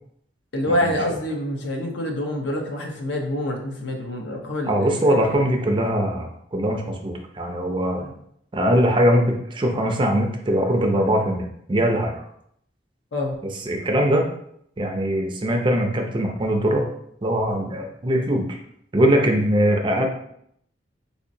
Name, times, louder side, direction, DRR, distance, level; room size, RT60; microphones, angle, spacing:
voice 1, 0.5-5.4 8.0-8.1 13.1-13.4, left 1 dB, 70° left, 2 dB, 0.7 m, -27 dB
voice 2, 4.7-8.0 8.5-12.2 13.7-14.2 14.8-16.9 17.2-18.4 18.9-20.1, equal, 25° right, 2 dB, 0.4 m, -21 dB
3.9 x 2.8 x 2.6 m, 0.71 s
head